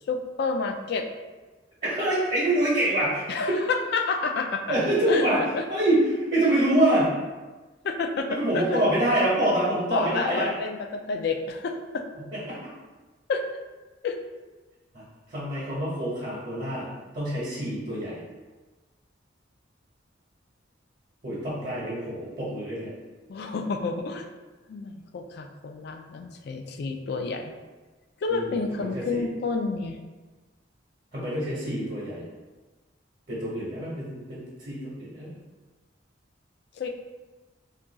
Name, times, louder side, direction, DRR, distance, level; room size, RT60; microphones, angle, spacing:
voice 1, 0.1-1.0 3.3-4.8 5.1-5.2 5.5-5.6 7.8-8.8 9.9-12.0 13.3-13.4 14.0-14.2 23.3-24.3 24.7-27.5 28.2-30.0 36.8-36.9, left 4 dB, 60° left, 4 dB, 0.3 m, -29 dB
voice 2, 1.8-3.6 4.7-5.4 5.7-7.2 8.3-10.5 12.1-12.6 14.9-15.0 15.3-16.9 17.1-18.2 21.2-22.9 28.3-29.2 31.1-32.2 33.3-35.3, right 1 dB, 45° right, -7 dB, 0.8 m, -26 dB
2.4 x 2.3 x 3.8 m, 1.2 s
head